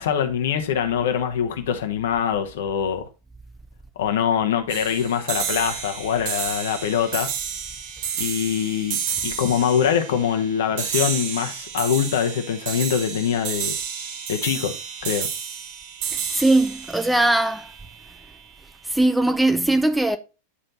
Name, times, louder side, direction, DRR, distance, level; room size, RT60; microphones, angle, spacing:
voice 1, 0.0-3.1 4.0-7.3 8.2-13.8 14.3-14.7 15.0-15.3, left 8 dB, 60° left, 1.0 m, -23 dB
sound 1, 4.7-18.2, right 7 dB, 45° right, 1.0 m, -31 dB
voice 2, 16.1-17.7 18.8-20.2, right 2 dB, 5° right, 0.4 m, -20 dB
9.7 x 3.3 x 4.0 m
figure-of-eight pair, 90°, 0 cm